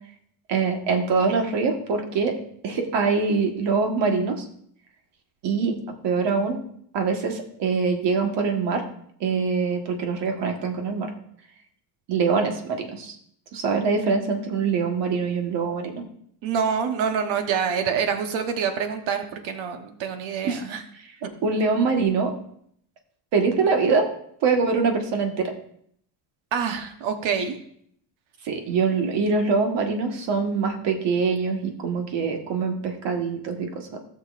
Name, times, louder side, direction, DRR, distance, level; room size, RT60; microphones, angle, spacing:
voice 1, 0.5-2.3 2.6-4.5 5.4-5.8 6.0-6.6 6.9-8.8 9.2-11.1 12.1-13.1 13.5-16.0 20.4-20.6 21.4-22.3 23.3-24.1 24.4-25.5 28.4-33.9, right 4 dB, 65° right, 4 dB, 1.6 m, -24 dB
voice 2, 16.4-20.8 26.5-27.5, right 6 dB, 85° right, 6 dB, 1.2 m, -26 dB
16.5 x 6.4 x 2.5 m, 0.67 s
cardioid pair, 140°, 45 cm